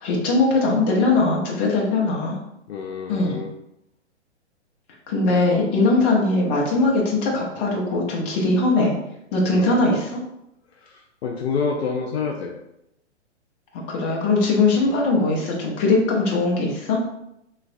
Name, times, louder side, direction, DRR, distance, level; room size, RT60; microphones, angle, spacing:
voice 1, 0.0-2.4 3.1-3.4 5.1-8.9 9.3-10.2 13.7-17.0, left 3 dB, 25° left, -2 dB, 0.7 m, -20 dB
voice 2, 2.7-3.5 9.5-9.9 10.8-12.5 14.9-15.0, left 5 dB, 65° left, 1 dB, 0.5 m, -28 dB
3.1 x 3.1 x 2.5 m, 0.82 s
figure-of-eight pair, 125°, 35 cm